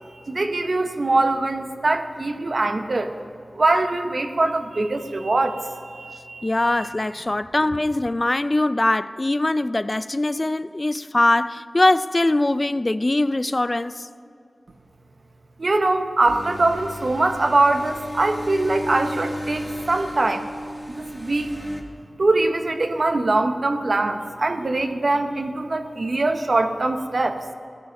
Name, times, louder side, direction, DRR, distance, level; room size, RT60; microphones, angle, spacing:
voice 1, 0.0-3.1 3.5-6.9 15.6-20.5 21.0-21.6 22.2-27.4, right 2 dB, 65° right, 0.9 m, -22 dB
voice 2, 6.4-14.1, left 2 dB, 35° left, 0.4 m, -22 dB
sound 1, 16.3-21.8, equal, 5° left, 2.0 m, -34 dB
17.0 x 10.5 x 5.3 m
cardioid pair, 45°, 0 cm